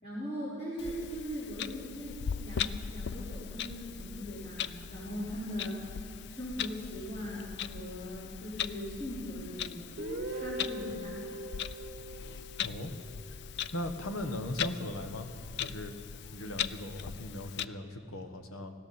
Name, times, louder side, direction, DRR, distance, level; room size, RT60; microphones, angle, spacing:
voice 1, 0.0-9.8 10.3-11.2, equal, 25° left, -13 dB, 4.3 m, -40 dB
Clock, 0.8-17.6, left 8 dB, 55° left, 0.3 m, -40 dB
Guitar, 10.0-13.8, right 1 dB, 40° right, 1.1 m, -41 dB
voice 2, 12.6-12.9 13.7-15.3 15.6-15.9 16.3-18.7, left 1 dB, 80° left, 7 dB, 1.2 m, -38 dB
19.0 x 16.0 x 4.3 m, 2.4 s
head